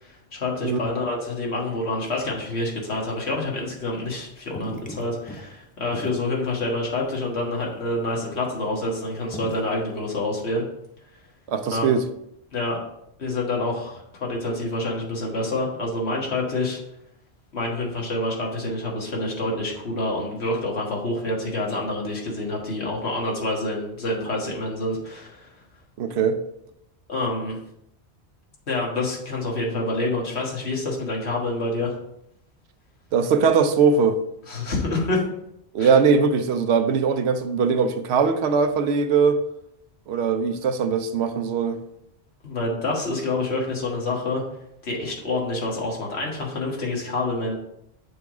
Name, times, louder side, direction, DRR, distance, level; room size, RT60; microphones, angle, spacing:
voice 1, 0.0-10.7 11.7-11.9 12.5-12.8 13.2-16.8 17.5-25.5 27.1-27.6 28.7-31.9 34.5-35.3 35.8-35.9 42.4-44.4 44.8-47.5, left 2 dB, 80° left, 1.8 m, -27 dB
sound 1, 2.6-3.3 3.6-4.2 4.4-5.5 5.9-8.8 9.1-9.9, equal, 15° left, 0.4 m, -39 dB
voice 2, 11.5-12.0 26.0-26.4 33.1-34.2 35.7-39.4 40.1-41.8, right 5 dB, 80° right, 0.9 m, -20 dB
6.8 x 3.5 x 4.8 m
omnidirectional pair, 1.1 m